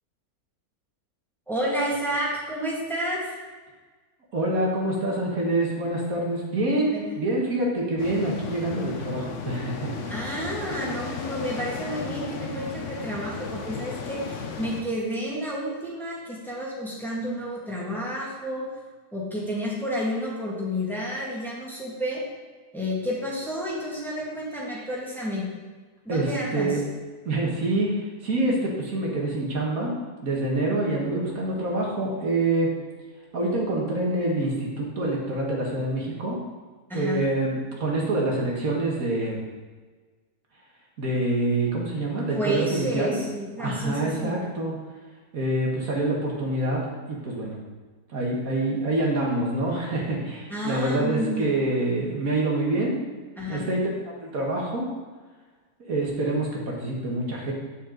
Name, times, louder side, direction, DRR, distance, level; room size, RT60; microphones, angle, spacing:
voice 1, 1.5-3.3 6.9-7.2 10.1-18.7 19.1-22.2 22.7-25.5 26.0-26.8 36.9-37.2 42.3-44.3 50.5-51.6 53.4-53.7, equal, ahead, -6 dB, 1.9 m, -30 dB
voice 2, 4.3-10.1 26.1-26.8 27.3-30.0 30.2-32.7 33.3-36.4 36.9-39.4 41.0-43.2 43.6-44.8 45.3-46.8 47.1-47.6 48.1-53.0 53.5-53.8 54.2-54.9 55.8-57.5, right 2 dB, 70° right, -2 dB, 1.9 m, -26 dB
sound 1, 8.0-14.8, left 5 dB, 60° left, 1.1 m, -35 dB
9.1 x 6.7 x 3.9 m, 1.4 s
omnidirectional pair, 1.6 m